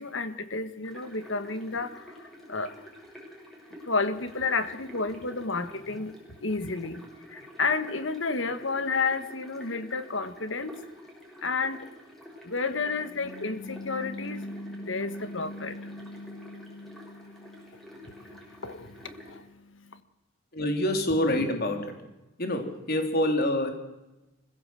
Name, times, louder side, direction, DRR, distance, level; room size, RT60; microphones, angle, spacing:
voice 1, 0.0-2.2 2.5-2.7 3.9-6.2 6.4-7.0 7.3-10.8 11.4-11.9 12.4-17.7 18.0-18.3 18.6-19.5, left 4 dB, 70° left, 11 dB, 1.7 m, -31 dB
sound 1, 0.8-19.4, equal, ahead, 5.5 m, -49 dB
voice 2, 20.5-21.9 22.4-23.7, left 1 dB, 50° left, 5 dB, 3.6 m, -26 dB
24.5 x 16.0 x 7.8 m, 0.99 s
head